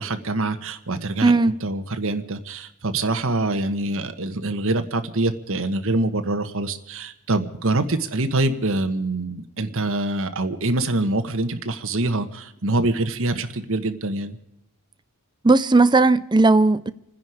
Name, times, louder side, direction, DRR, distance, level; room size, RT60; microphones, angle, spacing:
voice 1, 0.0-14.4, right 2 dB, 65° right, 1.3 m, -25 dB
voice 2, 1.2-1.6 15.4-16.9, right 3 dB, 20° right, 0.5 m, -16 dB
28.5 x 10.0 x 5.0 m
head